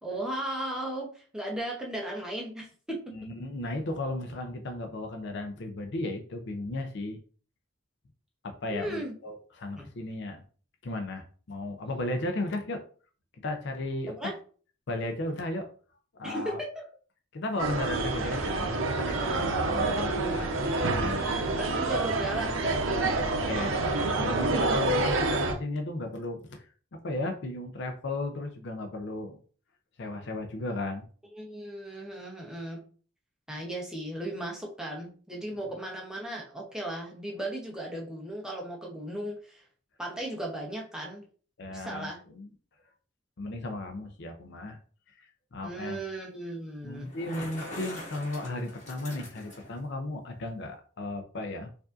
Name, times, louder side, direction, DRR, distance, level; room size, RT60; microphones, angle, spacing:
voice 1, 0.0-3.1 8.7-9.1 9.8-9.9 11.8-11.9 14.2-14.3 16.2-16.8 21.2-23.1 31.3-32.8 33.5-39.6 40.0-41.2 41.7-42.2 45.6-47.1, right 1 dB, 5° right, -1 dB, 0.7 m, -36 dB
voice 2, 3.1-7.2 8.4-10.4 10.8-12.8 13.4-14.3 14.9-15.7 16.2-16.6 17.3-20.5 20.9-21.3 23.5-26.6 27.0-29.4 30.0-31.1 41.6-42.5 43.4-44.8 45.2-46.0 46.8-51.7, left 2 dB, 60° left, 5 dB, 0.5 m, -35 dB
sound 1, 17.6-25.5, right 2 dB, 70° right, 0.6 m, -28 dB
Bicycle, 46.9-49.8, left 1 dB, 35° left, 1.4 m, -43 dB
4.7 x 2.6 x 2.4 m, 0.41 s
head